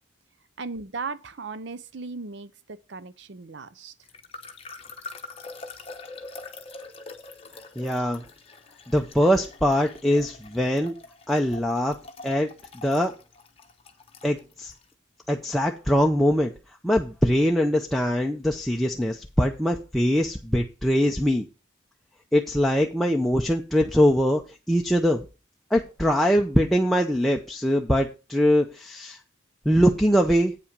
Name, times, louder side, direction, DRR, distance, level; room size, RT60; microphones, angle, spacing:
voice 1, 0.6-2.5 2.9-3.9, right 4 dB, 60° right, 0.6 m, -36 dB
sound 1, 4.0-14.8, left 3 dB, 30° left, 0.9 m, -44 dB
voice 2, 7.8-8.2 8.9-10.9 11.3-12.0 12.2-12.5 12.8-13.1 14.2-14.7 15.3-16.5 16.8-21.5 22.3-25.2 25.7-29.2 29.7-30.5, equal, ahead, 0.5 m, -22 dB
8.5 x 5.6 x 5.1 m
head